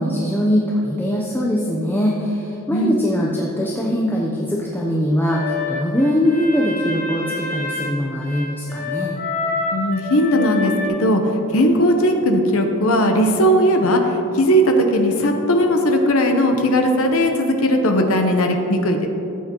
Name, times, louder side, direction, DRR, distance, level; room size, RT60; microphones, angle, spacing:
voice 1, 0.0-9.2, equal, 10° left, -4 dB, 0.7 m, -21 dB
sound 1, 5.3-10.9, left 4 dB, 35° left, 1.5 m, -27 dB
voice 2, 9.7-10.7 11.0-11.2 11.5-14.0 14.4-19.1, equal, 70° left, 3 dB, 0.9 m, -17 dB
14.0 x 8.4 x 3.0 m, 3.0 s
head